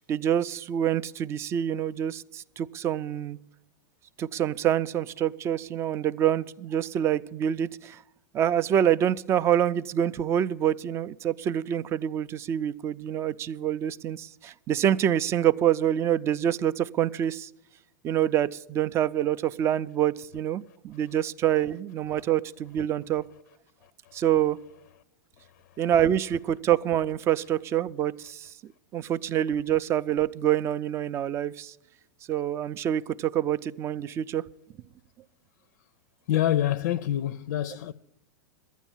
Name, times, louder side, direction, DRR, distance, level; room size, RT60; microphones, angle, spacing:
voice 1, 0.1-3.4 4.2-8.0 8.3-17.5 18.0-23.2 24.1-24.6 25.8-31.7 32.3-34.4, right 10 dB, 25° right, 0.4 m, -26 dB
voice 2, 36.3-37.9, left 12 dB, 65° left, 0.4 m, -26 dB
12.0 x 9.3 x 7.2 m
hypercardioid pair, 125°, 10 cm